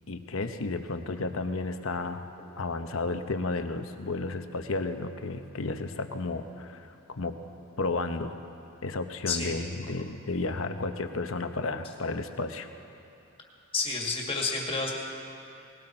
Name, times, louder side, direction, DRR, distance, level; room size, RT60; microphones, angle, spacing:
voice 1, 0.1-2.2 2.6-7.4 7.8-8.4 8.8-12.7, left 3 dB, 70° left, 7 dB, 0.9 m, -32 dB
voice 2, 9.3-9.6 13.7-14.9, left 4 dB, 25° left, -1 dB, 2.0 m, -30 dB
20.0 x 16.5 x 4.4 m, 2.6 s
head